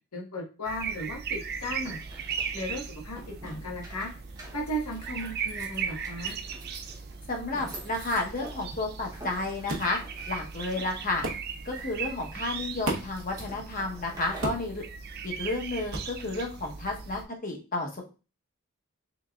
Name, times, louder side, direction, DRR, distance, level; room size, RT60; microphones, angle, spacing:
voice 1, 0.1-2.0 2.5-4.1 4.5-6.4, equal, 90° left, -1 dB, 1.3 m, -35 dB
sound 1, 0.6-17.2, right 6 dB, 45° right, 0.4 m, -38 dB
sound 2, 1.4-14.7, right 2 dB, 15° right, 0.9 m, -48 dB
voice 2, 7.3-10.0 10.3-11.2 11.6-14.8 15.2-17.9, left 2 dB, 40° left, 1 dB, 0.9 m, -31 dB
sound 3, 9.7-9.9 11.2-11.5 12.8-13.2 14.4-14.7 15.9-16.1, right 1 dB, 70° right, 0.9 m, -32 dB
3.9 x 3.5 x 2.3 m, 0.32 s
head